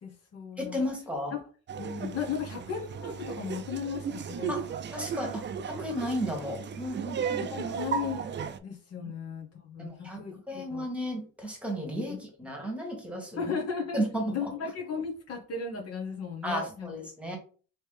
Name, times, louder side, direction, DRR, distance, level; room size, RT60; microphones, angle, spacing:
voice 1, 0.0-0.8 1.3-1.4 1.8-4.5 7.4-8.3 8.6-10.9 12.1-12.2 13.4-14.0 14.3-16.9, left 6 dB, 55° left, 1 dB, 0.9 m, -36 dB
voice 2, 0.6-1.3 4.5-4.7 4.9-7.4 9.8-10.2 10.5-13.5 13.9-14.5 16.4-17.4, equal, 5° right, 1 dB, 1.5 m, -34 dB
Laughter, 1.7-8.6, right 6 dB, 40° right, 0.4 m, -35 dB
3.2 x 3.0 x 3.2 m, 0.40 s
cardioid pair, 90°, 30 cm